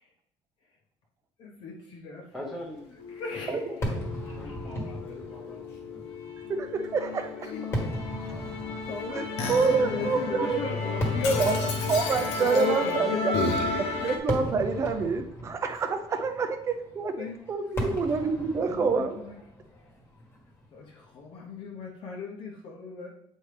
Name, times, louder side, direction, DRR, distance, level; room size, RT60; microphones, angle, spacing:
voice 1, 1.4-2.5 3.1-3.9 4.2-4.7 7.3-7.6 7.9-9.3 9.7-11.6 12.2-13.4 17.2-17.4 18.6-19.4 20.7-23.1, left 3 dB, 50° left, -2 dB, 0.8 m, -36 dB
voice 2, 2.3-3.0 3.5-6.1, left 1 dB, ahead, -3 dB, 1.0 m, -43 dB
Musical instrument, 3.0-14.2, left 3 dB, 75° left, 1.1 m, -32 dB
Fireworks, 3.8-21.1, equal, 20° left, 1.4 m, -38 dB
voice 3, 6.6-7.5 9.1-10.6 11.4-11.5 11.9-13.3 14.0-19.2, right 4 dB, 25° right, 6 dB, 0.6 m, -27 dB
8.0 x 4.3 x 3.3 m, 0.78 s
cardioid pair, 165°, 11 cm